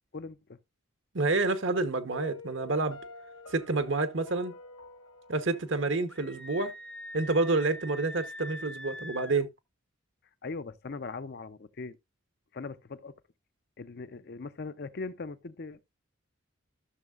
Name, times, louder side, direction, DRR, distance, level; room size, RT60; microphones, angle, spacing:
voice 1, 0.1-0.6 10.4-12.0 12.5-13.2 13.8-15.8, left 4 dB, 50° left, 0.5 m, -40 dB
voice 2, 1.1-3.0 3.5-4.5 5.3-6.7 7.1-9.5, right 3 dB, 65° right, 1.0 m, -28 dB
Piano, 2.1-7.1, left 3 dB, 70° left, 1.4 m, -49 dB
Screaming, 6.1-9.5, left 1 dB, 5° left, 0.5 m, -43 dB
14.0 x 6.4 x 2.4 m
head